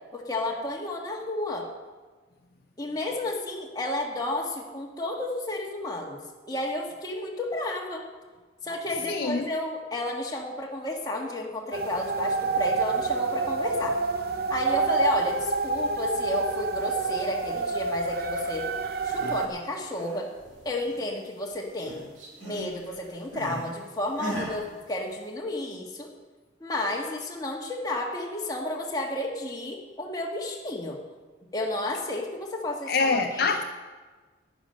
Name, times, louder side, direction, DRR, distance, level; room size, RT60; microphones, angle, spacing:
voice 1, 0.1-1.7 2.8-8.0 8.6-14.0 14.5-18.7 19.0-20.3 20.6-22.0 22.4-26.1 26.6-31.0 31.5-33.6, left 1 dB, 20° left, -1 dB, 1.5 m, -32 dB
voice 2, 9.1-9.5 32.9-33.6, left 4 dB, 50° left, 5 dB, 0.5 m, -25 dB
sound 1, 11.7-19.5, right 3 dB, 50° right, 0.7 m, -27 dB
sound 2, 18.9-19.5 19.8-21.2 21.5-23.7 24.2-24.6, right 1 dB, 85° right, 3.1 m, -38 dB
10.5 x 10.0 x 6.4 m, 1.4 s
head